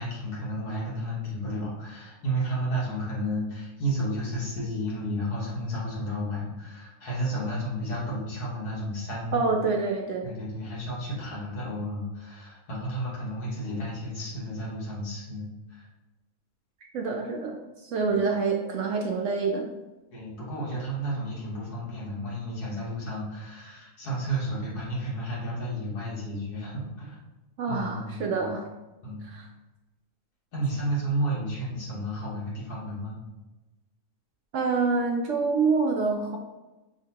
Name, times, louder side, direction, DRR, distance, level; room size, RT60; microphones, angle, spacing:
voice 1, 0.0-9.5 10.2-15.9 18.0-18.2 20.1-27.2 27.7-28.5 29.0-29.3 30.5-33.2, right 1 dB, 85° left, -5 dB, 2.0 m, -32 dB
voice 2, 9.3-10.3 16.9-19.6 27.6-28.7 29.2-29.5 34.5-36.4, right 4 dB, 70° right, 1 dB, 0.7 m, -26 dB
5.9 x 2.8 x 2.8 m, 1.1 s
omnidirectional pair, 1.6 m